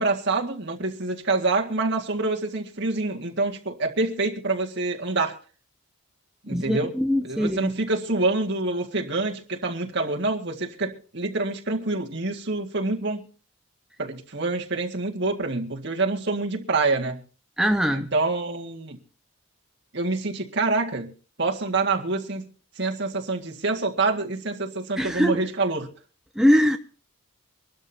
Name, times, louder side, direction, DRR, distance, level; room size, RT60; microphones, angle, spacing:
voice 1, 0.0-5.4 6.4-6.9 7.2-13.2 14.0-17.2 17.9-19.0 19.9-21.1 21.4-22.5 22.8-25.9, right 3 dB, 50° right, 2.0 m, -26 dB
voice 2, 6.5-7.7 17.6-18.1 25.0-25.4 26.4-26.8, equal, ahead, 0.5 m, -22 dB
25.5 x 12.5 x 2.8 m
head